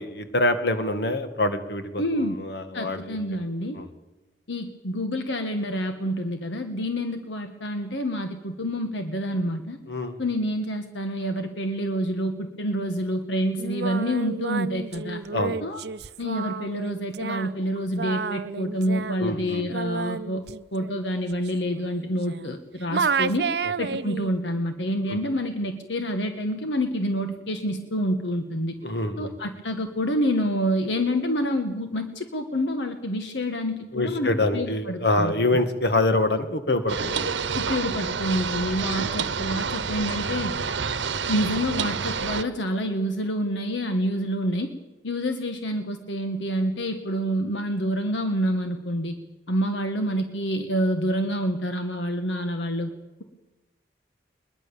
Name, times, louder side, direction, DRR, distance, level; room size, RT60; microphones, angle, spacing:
voice 1, 0.0-3.2 3.7-3.9 9.9-10.2 15.3-15.6 19.2-19.7 25.1-25.2 28.8-29.3 33.9-37.3 39.0-39.2, left 2 dB, 65° left, 8 dB, 2.1 m, -25 dB
voice 2, 2.0-2.4 2.7-3.8 4.5-9.8 10.2-15.2 15.6-15.8 16.2-20.4 20.7-23.5 23.8-28.7 29.2-35.3 37.5-40.5 41.3-44.7 45.0-49.2 49.5-52.9, equal, 85° left, 6 dB, 1.6 m, -27 dB
Singing, 13.6-22.6 22.9-24.3, right 5 dB, 65° right, 0.6 m, -31 dB
sound 1, 36.9-42.4, right 5 dB, 85° right, 1.0 m, -28 dB
21.5 x 21.5 x 7.2 m, 1.1 s
head